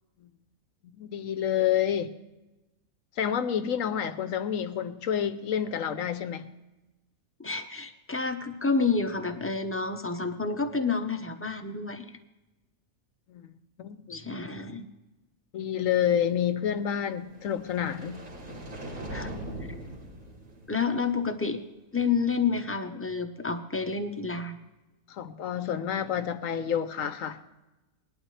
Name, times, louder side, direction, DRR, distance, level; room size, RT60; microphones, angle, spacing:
voice 1, 0.9-2.1 3.2-6.5 13.3-13.4 13.8-14.2 15.5-18.2 25.1-27.4, left 9 dB, 70° left, 11 dB, 1.0 m, -29 dB
voice 2, 7.4-12.0 14.1-14.8 19.1-19.3 20.7-21.6 21.9-24.6, left 4 dB, 15° left, 5 dB, 0.6 m, -29 dB
sound 1, 17.1-21.4, right 1 dB, 75° right, 3.7 m, -41 dB
19.5 x 12.0 x 3.3 m, 1.0 s
omnidirectional pair, 1.6 m